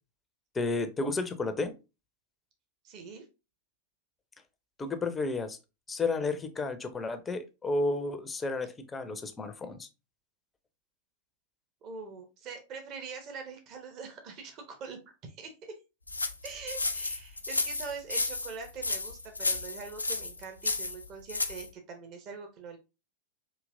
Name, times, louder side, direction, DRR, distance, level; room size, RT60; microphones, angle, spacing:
voice 1, 0.5-1.7 4.8-5.6 5.9-9.9, left 3 dB, 15° left, 9 dB, 0.6 m, -32 dB
voice 2, 2.8-3.3 11.8-15.7 16.4-22.8, right 5 dB, 35° right, 5 dB, 0.9 m, -43 dB
sound 1, 16.1-21.7, left 3 dB, 80° left, 0.4 m, -32 dB
5.2 x 2.8 x 2.5 m, 0.27 s
figure-of-eight pair, 90°, 0 cm